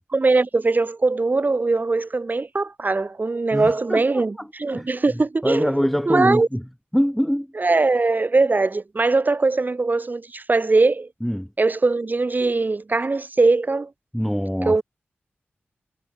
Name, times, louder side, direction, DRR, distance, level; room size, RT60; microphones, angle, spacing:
voice 1, 0.0-5.7 6.1-6.5 7.6-11.1 11.6-13.9 14.6-14.8, right 3 dB, 45° right, 2.0 m, -21 dB
voice 2, 3.5-4.5 4.7-6.6 6.9-7.5 11.2-11.5 14.1-14.8, equal, ahead, 1.9 m, -24 dB
cardioid pair, 60°, 4 cm